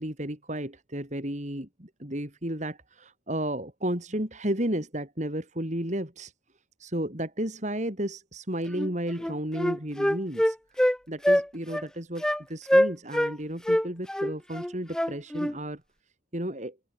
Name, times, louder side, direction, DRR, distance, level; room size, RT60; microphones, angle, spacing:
voice 1, 0.0-6.3 6.8-10.6 11.1-15.8 16.3-16.8, right 1 dB, 40° right, 4.5 m, -33 dB
Wind instrument woodwind instrument, 8.7-8.9 9.2-11.0 11.2-11.5 11.7-11.9 12.2-12.4 12.7-13.3 13.7-15.5, equal, 5° left, 0.4 m, -24 dB
open air
head